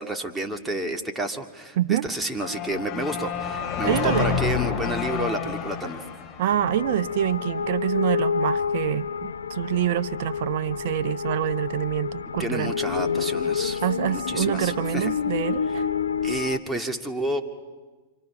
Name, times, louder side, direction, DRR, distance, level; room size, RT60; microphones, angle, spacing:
voice 1, 0.0-6.0 12.4-13.8 14.1-15.1 16.2-17.4, right 1 dB, 10° right, 4 dB, 2.0 m, -30 dB
voice 2, 1.8-2.1 3.8-4.4 6.4-12.7 13.8-15.9, right 11 dB, 60° right, 12 dB, 0.7 m, -26 dB
sound 1, 2.4-7.4, left 8 dB, 35° left, 7.6 m, -29 dB
sound 2, 6.5-16.6, left 6 dB, 85° left, 0.7 m, -29 dB
28.0 x 25.5 x 5.9 m, 1.3 s
hypercardioid pair, 105°, 0 cm